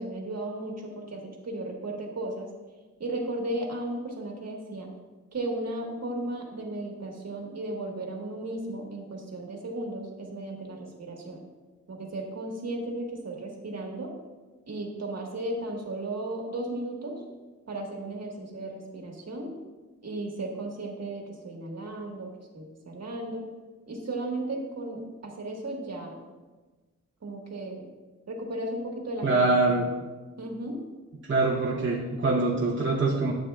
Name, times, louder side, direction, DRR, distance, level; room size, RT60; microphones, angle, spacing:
voice 1, 0.0-2.5 3.0-4.9 5.3-11.4 11.9-14.1 14.7-17.2 17.7-19.5 20.0-23.5 23.9-26.2 27.2-27.9 28.3-29.6 29.8-29.9 30.4-30.8, right 1 dB, 60° right, 0 dB, 1.6 m, -35 dB
voice 2, 29.2-29.8 31.2-33.3, right 3 dB, 40° right, -4 dB, 0.9 m, -24 dB
12.0 x 8.3 x 2.4 m, 1.3 s
wide cardioid pair, 150°, 30 cm